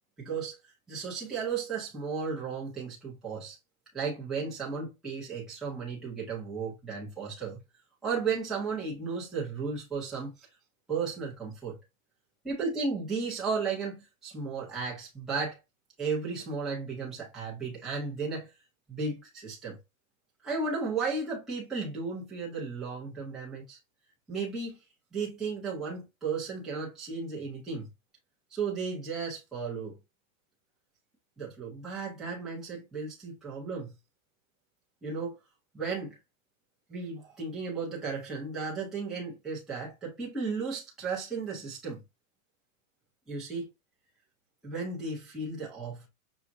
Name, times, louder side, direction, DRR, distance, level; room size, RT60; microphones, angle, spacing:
voice 1, 0.2-3.6 3.9-7.6 8.0-10.5 10.9-11.8 12.4-15.6 16.0-18.5 18.9-19.8 20.4-23.8 24.3-24.8 25.1-27.9 28.5-29.9 31.4-33.9 35.0-35.4 35.7-36.2 36.9-42.0 43.3-43.7 44.6-46.1, right 4 dB, ahead, 0.6 m, -34 dB
6.0 x 2.1 x 2.5 m
supercardioid pair, 175°, 41 cm